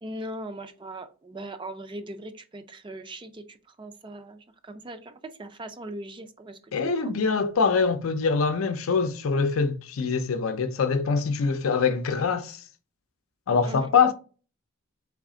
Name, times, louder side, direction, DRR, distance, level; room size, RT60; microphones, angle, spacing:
voice 1, 0.0-6.9 13.6-13.9, right 1 dB, 25° right, 0.4 m, -40 dB
voice 2, 6.7-12.6 13.5-14.1, left 5 dB, 75° left, 0.5 m, -24 dB
4.0 x 3.4 x 3.7 m
head